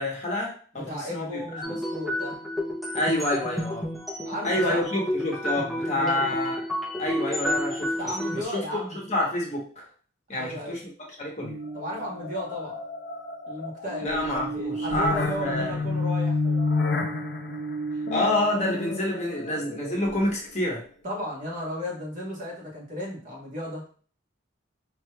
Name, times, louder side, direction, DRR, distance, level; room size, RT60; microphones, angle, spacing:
voice 1, 0.0-1.3 1.5-1.8 2.9-3.9 4.4-6.6 7.0-7.9 8.3-9.8 10.3-10.8 11.2-11.5 14.0-15.2 15.4-15.9 18.1-20.8, left 1 dB, 35° left, -2 dB, 1.0 m, -28 dB
voice 2, 0.7-2.4 4.2-4.8 5.9-6.3 8.0-9.0 10.3-10.8 11.7-12.8 13.5-16.7 21.0-24.0, equal, 40° right, -3 dB, 1.3 m, -35 dB
sound 1, 1.6-8.4, left 1 dB, ahead, 0.5 m, -30 dB
sound 2, 11.4-20.5, left 2 dB, 50° left, 0.5 m, -30 dB
5.2 x 3.1 x 2.2 m, 0.43 s
head